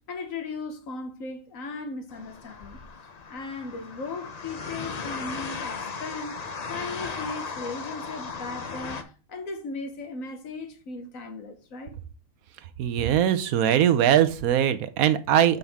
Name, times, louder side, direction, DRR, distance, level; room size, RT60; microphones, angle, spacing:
voice 1, 0.0-2.8 3.3-11.9, left 3 dB, 70° left, 1.5 m, -37 dB
sound 1, 2.1-9.0, left 5 dB, 40° left, 0.6 m, -36 dB
voice 2, 12.8-15.6, right 10 dB, 80° right, 1.1 m, -21 dB
7.1 x 5.3 x 3.5 m
omnidirectional pair, 1.5 m